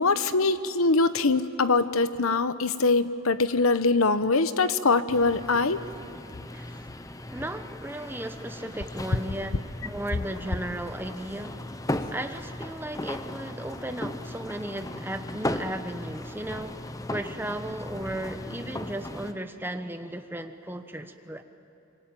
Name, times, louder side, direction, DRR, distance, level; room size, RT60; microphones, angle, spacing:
voice 1, 0.0-5.8, left 3 dB, 85° left, 1.0 m, -23 dB
sound 1, 5.1-19.3, left 1 dB, 15° left, 0.7 m, -37 dB
voice 2, 6.5-6.9 7.3-11.7 12.1-16.8 17.1-21.4, right 1 dB, 10° right, 1.1 m, -35 dB
25.5 x 24.0 x 9.0 m
head